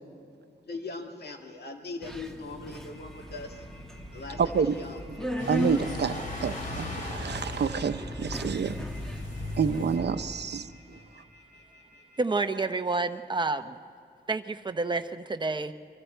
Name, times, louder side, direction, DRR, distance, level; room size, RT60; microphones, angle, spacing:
voice 1, 0.7-3.6 4.1-5.0, left 3 dB, 65° left, 2 dB, 2.2 m, -40 dB
Subway metro underground, 2.0-10.1, equal, 5° left, 1.3 m, -38 dB
sound 1, 2.7-12.8, left 1 dB, 85° left, 6.8 m, -57 dB
voice 2, 4.4-4.7 5.5-8.8 9.6-10.7, right 6 dB, 70° right, 10 dB, 0.8 m, -28 dB
sound 2, 5.4-10.5, left 1 dB, 45° left, 3.2 m, -37 dB
voice 3, 12.2-13.8 14.3-15.7, right 3 dB, 25° right, 8 dB, 0.8 m, -29 dB
30.0 x 24.0 x 4.5 m, 2.5 s
wide cardioid pair, 145°, 18 cm